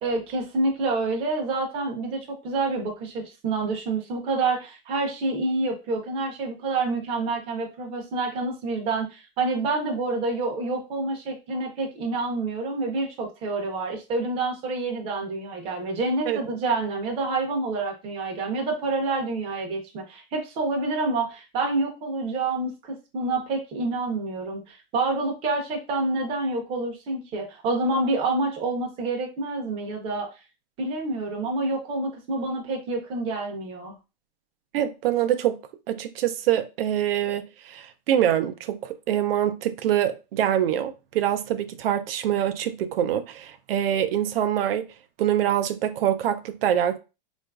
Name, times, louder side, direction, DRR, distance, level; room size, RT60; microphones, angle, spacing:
voice 1, 0.0-30.3 30.8-34.0, right 3 dB, 20° right, 0.6 m, -28 dB
voice 2, 34.7-35.6 35.9-44.9 45.2-47.0, right 10 dB, 80° right, 0.5 m, -25 dB
3.7 x 2.4 x 2.3 m
supercardioid pair, 160°, 29 cm